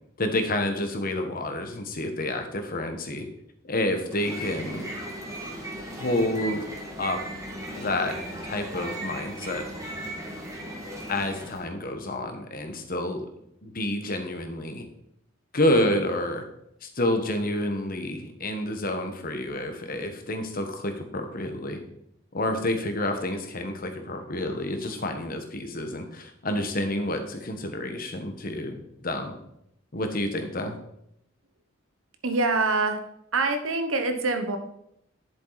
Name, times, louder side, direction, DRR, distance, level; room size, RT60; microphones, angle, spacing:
voice 1, 0.2-3.3 3.6-4.9 6.0-6.6 7.0-7.4 7.7-8.2 8.4-9.6 11.1-13.2 13.6-14.8 15.5-16.4 16.8-21.8 22.3-29.3 29.9-30.8, left 1 dB, 45° left, 6 dB, 1.3 m, -29 dB
sound 1, 4.0-11.6, right 1 dB, 15° right, 1.8 m, -37 dB
voice 2, 32.2-33.0 33.3-34.6, right 3 dB, 85° right, 7 dB, 1.2 m, -25 dB
10.5 x 7.4 x 4.1 m, 0.77 s
head